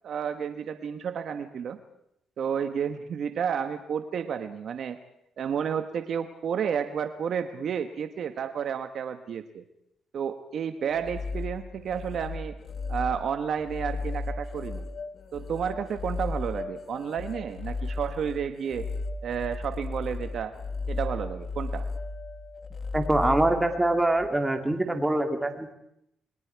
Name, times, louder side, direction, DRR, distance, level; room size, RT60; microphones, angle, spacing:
voice 1, 0.0-1.8 2.4-5.0 5.4-9.6 10.1-12.5 12.9-14.9 15.3-18.9 19.2-20.5 20.9-21.9, right 7 dB, 60° right, 8 dB, 1.2 m, -31 dB
sound 1, 10.8-24.3, left 3 dB, 50° left, 1.3 m, -35 dB
voice 2, 22.9-25.7, right 1 dB, 10° right, 5 dB, 2.6 m, -24 dB
29.0 x 21.5 x 4.7 m, 0.78 s
cardioid pair, 90°, 0 cm